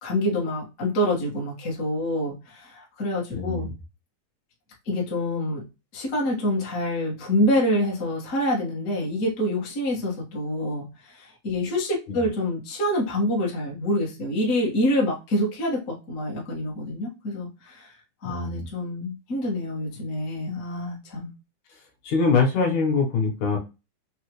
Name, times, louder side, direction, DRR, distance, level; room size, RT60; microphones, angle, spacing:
voice 1, 0.0-3.7 4.9-5.6 5.9-17.9 18.2-21.3, left 1 dB, 85° left, -4 dB, 0.7 m, -26 dB
voice 2, 3.4-3.7 12.1-12.2 18.2-18.7 22.0-23.6, left 4 dB, 65° left, 1 dB, 2.2 m, -23 dB
5.6 x 2.4 x 3.0 m, 0.28 s
omnidirectional pair, 4.1 m